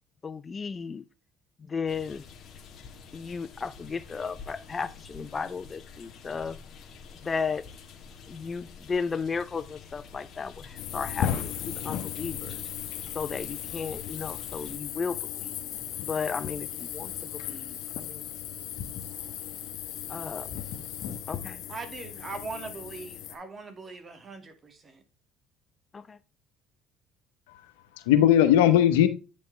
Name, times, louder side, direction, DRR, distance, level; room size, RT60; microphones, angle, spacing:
voice 1, 0.2-1.0 1.7-2.2 3.1-6.6 7.2-7.7 8.3-12.6 13.1-15.5 16.0-17.8 18.1-18.2 20.1-20.5 21.3-21.6 25.9-26.2, left 5 dB, 30° left, 0.5 m, -34 dB
sound 1, 1.9-14.8, left 5 dB, 50° left, 1.6 m, -48 dB
sound 2, 10.8-23.3, left 10 dB, 65° left, 1.2 m, -36 dB
voice 2, 21.7-25.0, right 3 dB, 35° right, 2.2 m, -40 dB
voice 3, 27.5-29.1, left 11 dB, 90° left, 1.0 m, -20 dB
9.0 x 5.4 x 3.3 m
supercardioid pair, 80°, 0 cm